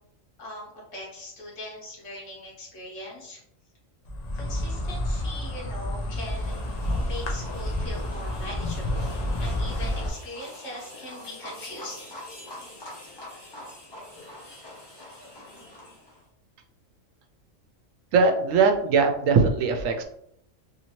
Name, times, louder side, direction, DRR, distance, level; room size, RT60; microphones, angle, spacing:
voice 1, 0.4-3.4 4.3-6.6 7.0-12.2, left 1 dB, 70° left, -3 dB, 1.5 m, -40 dB
Insect, 4.0-10.1, left 1 dB, 50° left, 0.5 m, -29 dB
sound 1, 6.1-16.2, left 1 dB, 25° left, 0.8 m, -44 dB
voice 2, 18.1-20.0, right 4 dB, 85° right, 5 dB, 1.0 m, -20 dB
3.1 x 2.8 x 2.9 m, 0.70 s
omnidirectional pair, 1.3 m